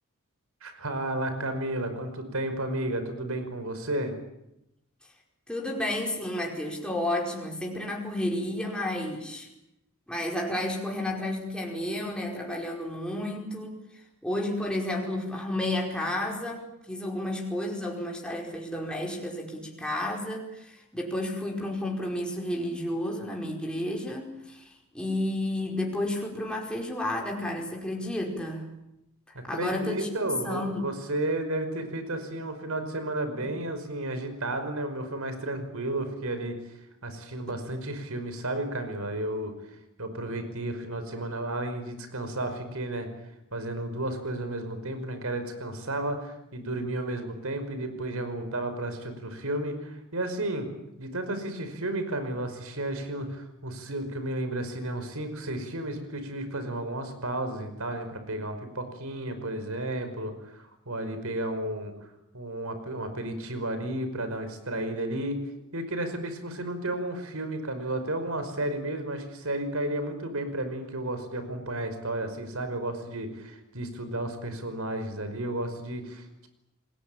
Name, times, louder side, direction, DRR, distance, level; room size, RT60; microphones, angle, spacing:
voice 1, 0.6-4.1 29.3-36.6 37.0-39.5 40.0-43.1 43.5-50.7 51.0-61.9 62.3-65.4 65.7-76.5, right 1 dB, 75° right, 9 dB, 5.4 m, -32 dB
voice 2, 5.5-9.5 10.1-13.8 14.2-28.6 29.3-30.1 30.4-30.8 33.4-33.5, left 1 dB, 5° left, -1 dB, 4.9 m, -31 dB
28.5 x 20.5 x 8.8 m, 0.86 s
head